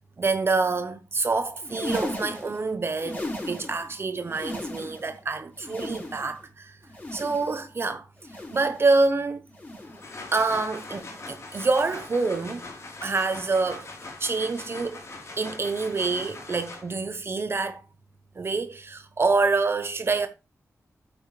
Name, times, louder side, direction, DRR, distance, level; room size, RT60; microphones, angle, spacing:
voice 1, 0.2-6.8 7.1-8.1 8.5-9.4 10.3-12.6 13.0-13.9 14.2-15.0 15.4-17.8 18.4-20.3, right 3 dB, 45° right, 0.9 m, -26 dB
sound 1, 1.5-3.9 4.2-5.2 5.5-6.5 6.9-7.7 8.2-8.9 9.5-10.2 10.8-11.4 12.1-12.7 13.5-13.9 14.8-15.1 16.1-16.3 17.5-17.6, left 1 dB, 30° left, 4.3 m, -38 dB
sound 2, 9.8-17.1, left 3 dB, 55° left, 3.5 m, -41 dB
8.7 x 8.5 x 3.2 m
wide cardioid pair, 110°, 6 cm